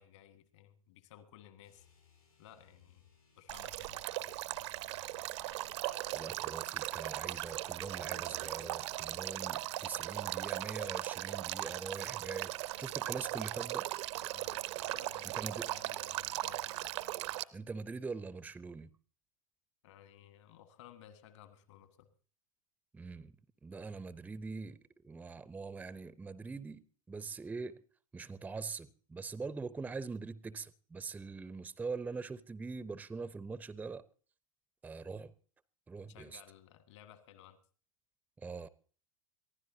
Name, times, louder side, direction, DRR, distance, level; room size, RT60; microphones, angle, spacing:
voice 1, 0.0-1.9 2.4-3.0 3.4-4.7 14.3-16.9 19.8-22.1 28.8-28.9 31.2-31.3 36.1-37.6, left 11 dB, 55° left, 1.7 m, -57 dB
sound 1, 1.6-9.2, left 3 dB, 90° left, 4.0 m, -66 dB
Male speech man speaking / Stream / Trickle dribble, 3.5-17.4, right 16 dB, 55° right, 0.7 m, -38 dB
voice 2, 6.1-13.9 15.2-15.7 17.5-18.9 22.9-23.4 23.6-27.8 28.1-34.0 34.8-35.3 35.9-36.4 38.4-38.7, right 4 dB, 10° right, 0.6 m, -43 dB
23.0 x 15.5 x 2.7 m
figure-of-eight pair, 85°, 18 cm